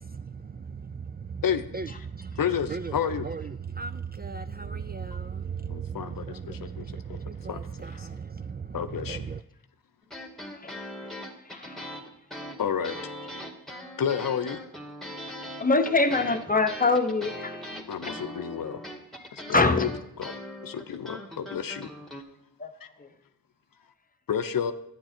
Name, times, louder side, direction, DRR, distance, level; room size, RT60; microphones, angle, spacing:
voice 1, 0.0-1.4 1.7-9.4, right 6 dB, 25° right, 0.4 m, -37 dB
voice 2, 2.4-3.3 5.7-6.1 6.6-6.7 7.5-7.6 8.7-9.2 12.6-12.9 14.0-14.6 17.9-18.8 19.8-19.9 20.2-20.3 20.6-21.9 24.3-24.7, left 8 dB, 60° left, 0.7 m, -29 dB
sound 1, 10.0-22.2, left 1 dB, ahead, 1.8 m, -40 dB
voice 3, 11.5-11.9 15.6-17.6 18.0-18.3 19.5-19.9 22.6-22.7 23.0-23.1, left 3 dB, 20° left, 1.0 m, -24 dB
11.5 x 9.2 x 4.4 m
cardioid pair, 55°, 38 cm